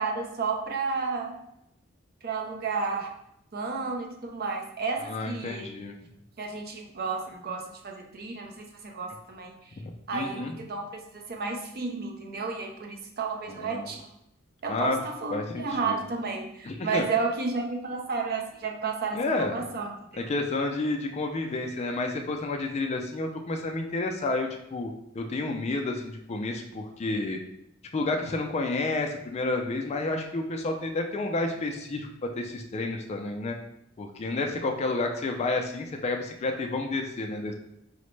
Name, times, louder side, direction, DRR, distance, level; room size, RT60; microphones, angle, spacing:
voice 1, 0.0-1.3 2.2-3.1 3.5-5.7 6.4-8.7 8.9-9.7 10.1-14.0 14.6-20.3, right 4 dB, 50° right, 1 dB, 0.6 m, -32 dB
voice 2, 5.1-5.9 9.7-9.8 10.1-10.5 13.5-13.9 14.7-15.0 15.3-16.0 16.7-17.0 19.1-19.6 20.2-27.4 27.9-32.1 32.4-33.6 34.0-37.5, left 2 dB, 30° left, 3 dB, 0.3 m, -30 dB
4.9 x 2.1 x 3.1 m, 0.80 s
head